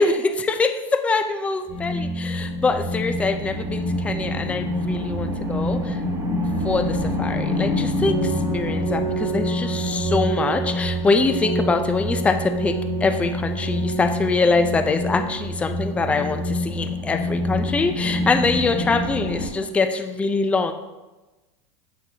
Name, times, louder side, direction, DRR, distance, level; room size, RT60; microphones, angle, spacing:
voice 1, 0.0-6.0 6.6-20.7, left 3 dB, 10° left, 8 dB, 0.3 m, -23 dB
sound 1, 1.7-19.5, equal, 20° right, 1.3 m, -26 dB
7.6 x 6.1 x 2.7 m, 1.1 s
supercardioid pair, 125°, 15 cm